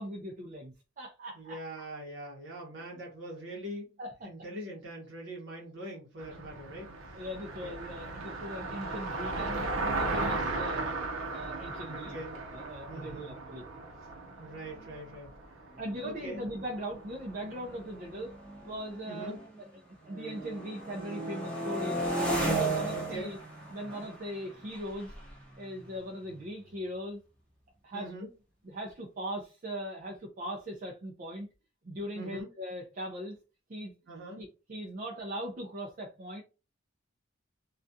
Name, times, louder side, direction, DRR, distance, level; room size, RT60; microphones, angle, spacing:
voice 1, 0.0-1.6 4.0-4.3 7.1-10.9 11.3-13.6 15.8-18.4 18.6-19.4 20.0-22.3 22.6-23.4 23.7-25.1 25.6-27.2 27.8-28.1 28.6-31.5 31.8-33.4 33.7-33.9 34.4-36.4, equal, 40° right, 0.5 m, -39 dB
voice 2, 1.3-3.9 4.2-7.3 7.6-7.7 11.9-12.4 12.9-13.3 14.4-16.4 19.1-19.4 22.9-23.4 27.9-28.3 32.1-32.5 34.1-34.4, right 1 dB, 60° right, 0.8 m, -43 dB
Car passing by, 6.2-18.5, right 2 dB, 85° right, 0.7 m, -37 dB
sound 1, 14.3-14.4 14.6-15.0 15.7-19.7 20.0-26.7, right 2 dB, 5° left, 0.8 m, -36 dB
2.3 x 2.3 x 2.6 m
head